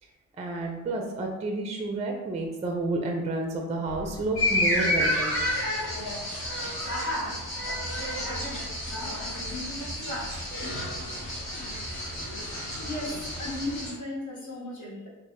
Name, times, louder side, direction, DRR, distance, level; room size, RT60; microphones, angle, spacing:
voice 1, 0.4-5.6, right 2 dB, 20° right, 2 dB, 0.3 m, -30 dB
sound 1, 3.8-13.9, equal, 5° left, 0.7 m, -43 dB
sound 2, 4.3-13.9, left 1 dB, 85° left, 1.0 m, -30 dB
voice 2, 12.8-15.1, left 1 dB, 60° left, -4 dB, 0.9 m, -36 dB
2.0 x 2.0 x 3.0 m, 1.1 s
supercardioid pair, 65°, 34 cm